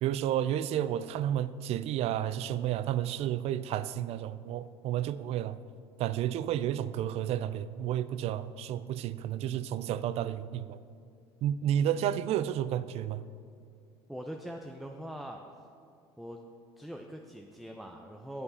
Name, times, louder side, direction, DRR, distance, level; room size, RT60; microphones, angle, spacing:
voice 1, 0.0-5.6 6.0-10.8 11.4-13.2, right 11 dB, 50° right, 0.4 m, -31 dB
voice 2, 14.1-15.4 16.2-16.4 16.8-18.4, equal, ahead, 0.6 m, -42 dB
8.7 x 6.8 x 5.7 m
hypercardioid pair, 75°, 13 cm